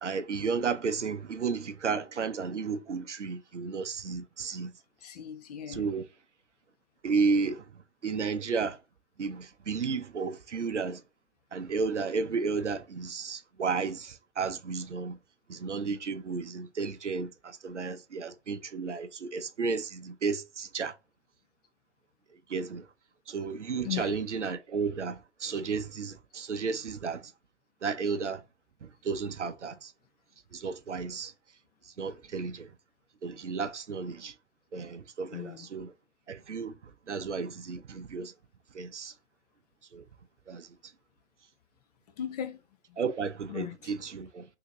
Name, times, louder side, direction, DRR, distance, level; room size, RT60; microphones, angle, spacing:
voice 1, 0.0-4.7 5.7-6.1 7.0-7.6 8.0-8.8 9.2-11.0 11.5-15.2 15.5-20.9 22.5-22.8 23.3-27.3 27.8-28.4 29.0-29.9 30.5-31.3 32.0-32.7 33.2-34.3 34.7-35.9 36.3-36.7 37.1-38.3 38.7-39.1 39.9-40.0 40.5-40.7 43.0-44.4, right 5 dB, 85° right, 0.7 m, -33 dB
voice 2, 5.0-5.9 23.8-24.2 35.3-35.7 42.2-42.6 43.5-43.7, left 10 dB, 35° left, 0.6 m, -37 dB
3.7 x 2.8 x 3.0 m
figure-of-eight pair, 120°, 35 cm